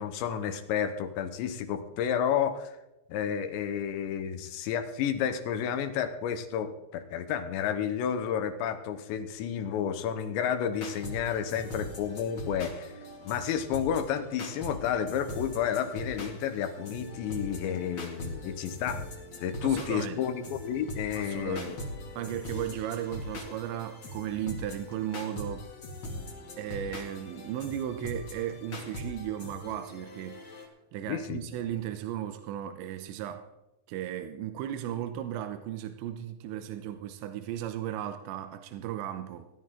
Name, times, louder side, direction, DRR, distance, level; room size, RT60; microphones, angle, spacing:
voice 1, 0.0-2.7 3.1-12.9 13.3-19.0 19.4-21.8 31.1-31.4, left 8 dB, 80° left, 9 dB, 3.2 m, -31 dB
sound 1, 10.7-30.7, left 1 dB, 40° left, 2.0 m, -41 dB
voice 2, 19.6-20.2 21.2-21.8 22.2-25.7 26.6-33.5 33.9-39.5, right 11 dB, 85° right, 9 dB, 3.1 m, -36 dB
18.5 x 12.5 x 3.8 m, 0.93 s
omnidirectional pair, 5.2 m